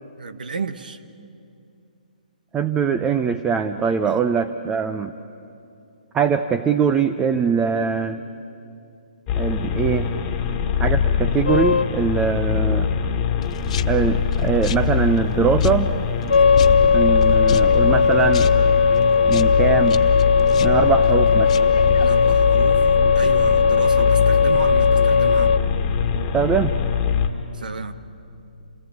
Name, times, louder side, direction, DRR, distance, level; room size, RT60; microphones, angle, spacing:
voice 1, 0.2-1.0 4.0-4.2 22.0-22.8 23.1-25.5 27.5-27.9, right 4 dB, 75° right, 10 dB, 1.5 m, -31 dB
voice 2, 2.5-5.1 6.1-8.2 9.4-10.1 10.8-12.9 13.9-15.9 16.9-18.5 19.3-20.0 20.6-21.5 26.3-26.7, right 6 dB, 15° right, 9 dB, 0.7 m, -22 dB
sound 1, 9.3-27.3, left 7 dB, 25° left, 1.9 m, -23 dB
sound 2, 11.5-11.9 16.3-25.6, left 5 dB, 80° left, 0.7 m, -17 dB
sound 3, 13.4-22.3, left 9 dB, 50° left, 0.8 m, -33 dB
28.5 x 18.5 x 8.6 m, 2.6 s
hypercardioid pair, 140°, 5 cm